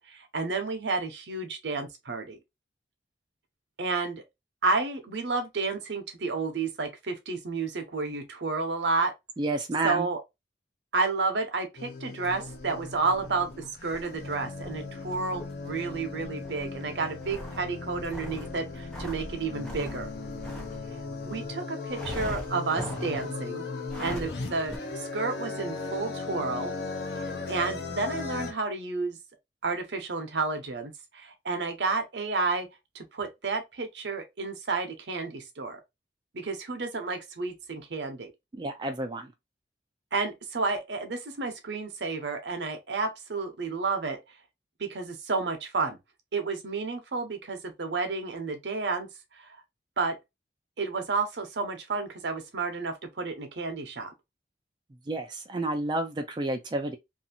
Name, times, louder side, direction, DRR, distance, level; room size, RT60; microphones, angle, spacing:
voice 1, 0.1-2.4 3.8-4.2 4.6-9.1 9.8-10.2 10.9-13.5 13.8-20.1 21.2-23.6 24.0-26.7 27.1-29.2 29.6-32.7 32.9-35.8 36.3-38.3 40.1-44.2 44.8-46.0 46.3-49.1 49.4-49.6 50.0-50.2 50.8-54.1, right 3 dB, 80° right, 0.7 m, -31 dB
voice 2, 9.4-10.1 38.5-39.3 55.1-57.0, right 2 dB, 25° right, 0.3 m, -30 dB
sound 1, 11.8-28.5, left 3 dB, 70° left, 0.6 m, -37 dB
Horse breathing, 12.2-21.5 21.9-23.4 23.8-24.4 24.7-24.8, equal, 5° left, 0.8 m, -42 dB
2.6 x 2.4 x 2.6 m
head